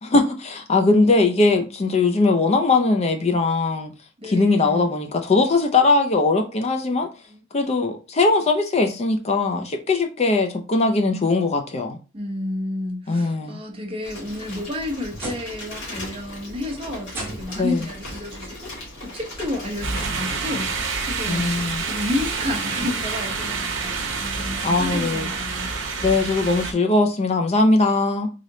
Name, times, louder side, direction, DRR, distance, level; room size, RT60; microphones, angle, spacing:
voice 1, 0.0-3.9 4.2-7.1 7.5-12.0 13.1-13.6 17.6-17.8 21.3-21.8 24.6-25.3 26.0-28.3, left 3 dB, 35° left, 0.5 m, -20 dB
voice 2, 4.2-4.9 7.3-7.4 12.1-18.7 19.0-20.8 21.1-21.5 21.8-25.7, left 2 dB, 30° right, 0.8 m, -31 dB
Bicycle, 14.0-25.2, left 1 dB, 65° left, 1.8 m, -39 dB
sound 1, 14.1-15.7 16.0-16.4 17.1-17.8 18.9-19.0 19.7-19.8 21.4-21.5, right 2 dB, 10° right, 1.3 m, -38 dB
sound 2, 19.8-26.7, right 4 dB, 65° right, 0.9 m, -28 dB
3.8 x 3.3 x 2.7 m
head